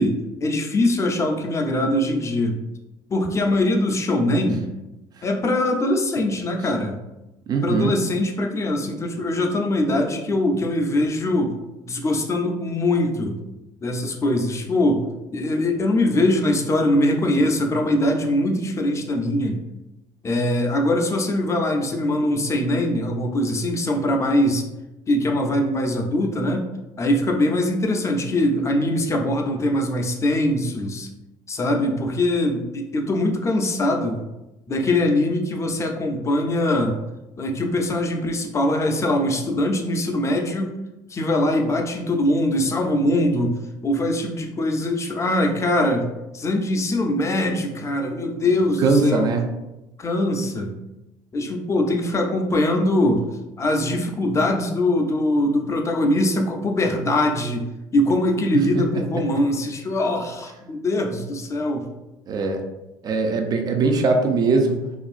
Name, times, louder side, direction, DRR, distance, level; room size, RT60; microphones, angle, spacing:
voice 1, 0.0-2.6 3.1-4.7 5.2-7.0 7.6-11.5 11.8-13.4 13.8-15.0 15.3-19.6 20.2-24.6 25.1-26.6 27.0-31.1 31.5-34.2 34.7-37.0 37.4-40.7 41.1-43.6 43.8-46.1 46.3-49.3 50.0-50.8 51.3-53.2 53.6-57.7 57.9-61.9, left 1 dB, 30° left, 2 dB, 0.5 m, -22 dB
voice 2, 7.5-7.9 48.8-49.5 58.5-58.9 62.3-62.6 63.0-64.8, right 3 dB, 40° right, 4 dB, 0.5 m, -21 dB
2.9 x 2.5 x 2.4 m, 0.97 s
supercardioid pair, 80°, 10 cm